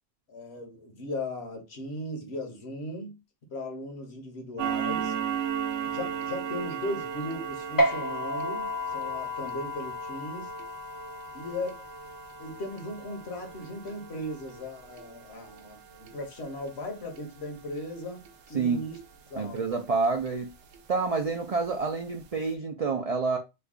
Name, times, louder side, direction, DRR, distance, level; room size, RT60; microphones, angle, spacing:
voice 1, 0.3-3.2 3.5-5.1 5.8-10.5 11.3-11.9 12.4-18.2 18.5-19.0 19.3-19.8, left 1 dB, 65° left, 1.2 m, -37 dB
sound 1, 4.6-19.7 20.0-20.3 20.7-20.8 21.3-21.4 21.8-21.9 22.2-22.4, right 8 dB, 75° right, 0.9 m, -37 dB
sound 2, 7.8-14.6, left 1 dB, 35° left, 0.3 m, -33 dB
voice 2, 19.4-20.5 20.9-23.4, right 4 dB, 60° right, 0.4 m, -28 dB
3.2 x 2.2 x 3.5 m
omnidirectional pair, 1.2 m